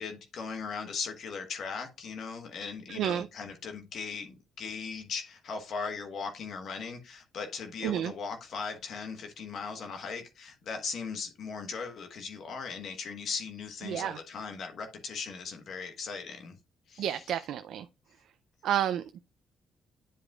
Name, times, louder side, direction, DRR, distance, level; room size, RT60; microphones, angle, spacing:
voice 1, 0.0-16.6 16.9-17.4, left 5 dB, 65° left, 1.2 m, -38 dB
voice 2, 2.9-3.3 7.8-8.1 13.9-14.2 17.0-17.8 18.6-19.2, right 10 dB, 75° right, 0.4 m, -30 dB
10.0 x 4.9 x 2.3 m
cardioid pair, 90°, 0 cm